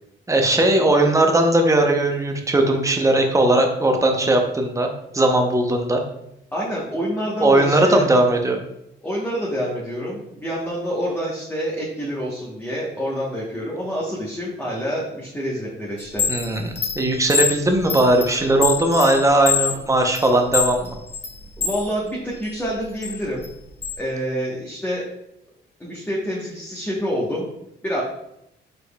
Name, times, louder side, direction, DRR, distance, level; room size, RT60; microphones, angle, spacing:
voice 1, 0.3-4.9 5.1-6.0 7.4-8.6 16.3-20.9, right 1 dB, 15° right, 3 dB, 0.8 m, -18 dB
voice 2, 6.5-8.1 9.0-16.3 21.6-23.4 24.0-25.0 25.8-27.5 27.8-28.0, equal, 10° left, -5 dB, 1.1 m, -27 dB
Chime, 16.0-21.8 22.3-24.0, left 6 dB, 30° left, 0.9 m, -26 dB
5.1 x 4.2 x 2.3 m, 0.81 s
cardioid pair, 90°, 20 cm